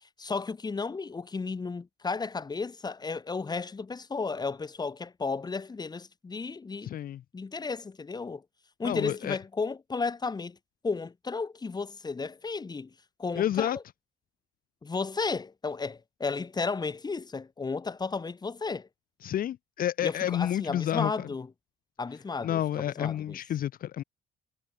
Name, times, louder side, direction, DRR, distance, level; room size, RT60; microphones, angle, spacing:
voice 1, 0.2-6.9 7.3-8.4 8.8-10.6 10.8-12.9 13.2-13.8 14.8-18.9 20.0-21.5 22.0-23.4, left 4 dB, 25° left, 5.7 m, -33 dB
voice 2, 6.8-7.2 8.8-9.4 13.3-13.8 19.2-21.3 22.4-24.0, left 11 dB, 60° left, 2.2 m, -30 dB
cardioid pair, 110°, 17 cm